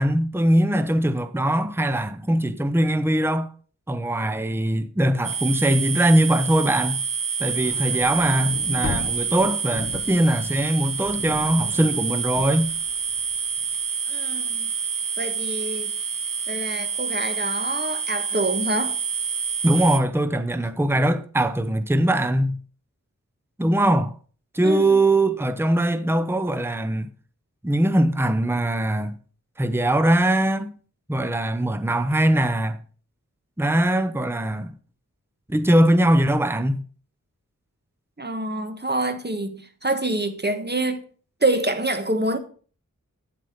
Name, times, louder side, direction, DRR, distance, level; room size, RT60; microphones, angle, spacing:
voice 1, 0.0-3.5 3.9-7.0 7.4-12.7 19.6-22.6 23.6-24.1 24.5-27.1 27.6-29.1 29.6-30.7 31.1-32.8 33.6-34.7 35.5-36.8, right 1 dB, 5° right, 0.8 m, -21 dB
sound 1, 5.2-20.0, right 6 dB, 75° right, 1.2 m, -28 dB
sound 2, 7.4-13.7, left 4 dB, 40° left, 0.7 m, -37 dB
voice 2, 14.1-14.7 15.2-15.9 16.5-19.0 24.6-25.1 38.2-41.0 41.4-42.4, right 2 dB, 30° right, 1.4 m, -26 dB
9.3 x 7.7 x 5.2 m
wide cardioid pair, 50°, 33 cm